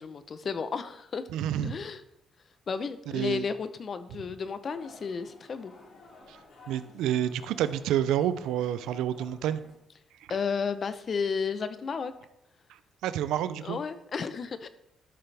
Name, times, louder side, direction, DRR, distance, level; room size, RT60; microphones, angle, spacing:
voice 1, 0.0-1.2 1.6-2.0 2.7-5.7 10.3-12.1 13.6-14.7, left 5 dB, 45° left, 12 dB, 0.7 m, -33 dB
voice 2, 1.3-1.8 3.1-3.4 6.3-6.4 6.7-9.6 13.0-13.8, right 11 dB, 90° right, 14 dB, 0.5 m, -29 dB
sound 1, 4.7-9.7, left 3 dB, 65° left, 2.8 m, -53 dB
13.0 x 6.8 x 3.4 m, 0.82 s
cardioid pair, 90°, 0 cm